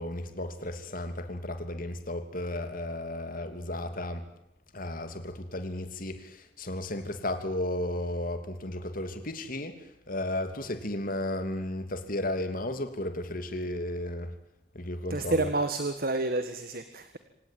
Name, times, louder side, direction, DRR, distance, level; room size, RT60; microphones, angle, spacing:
voice 1, 0.0-4.3 4.7-14.3 14.7-15.5, left 1 dB, 50° left, 3.0 m, -34 dB
voice 2, 15.1-17.2, right 2 dB, 55° right, 1.7 m, -29 dB
27.0 x 17.5 x 9.4 m
head